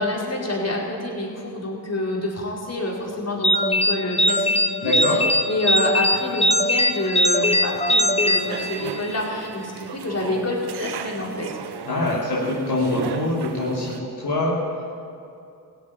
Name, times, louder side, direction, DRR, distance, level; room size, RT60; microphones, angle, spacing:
voice 1, 0.0-5.2 5.5-11.5, left 1 dB, 35° left, -3 dB, 4.7 m, -27 dB
sound 1, 3.4-9.2, left 1 dB, 15° left, 1.3 m, -21 dB
voice 2, 4.8-5.2 11.9-14.5, left 1 dB, 65° left, -5 dB, 3.1 m, -24 dB
sound 2, 8.2-14.0, right 8 dB, 65° right, 1.0 m, -35 dB
15.5 x 9.5 x 9.8 m, 2.5 s
supercardioid pair, 45°, 43 cm